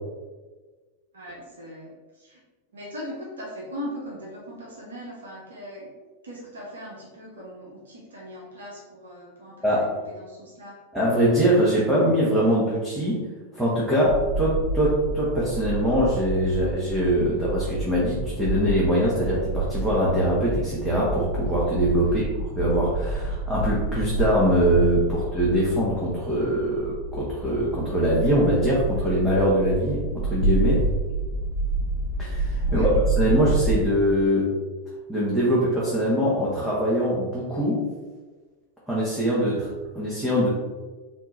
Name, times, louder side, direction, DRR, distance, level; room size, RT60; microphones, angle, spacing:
voice 1, 1.1-2.4 2.7-5.9 6.2-10.8 22.0-22.3 32.6-32.9, equal, 65° right, -4 dB, 1.2 m, -40 dB
voice 2, 9.6-9.9 10.9-13.2 13.5-30.9 32.2-34.5 35.1-37.8 38.9-40.5, equal, 5° right, -8 dB, 1.2 m, -23 dB
sound 1, 14.1-33.8, right 2 dB, 60° left, 1.0 m, -28 dB
4.3 x 2.9 x 4.1 m, 1.3 s
figure-of-eight pair, 90°, 0 cm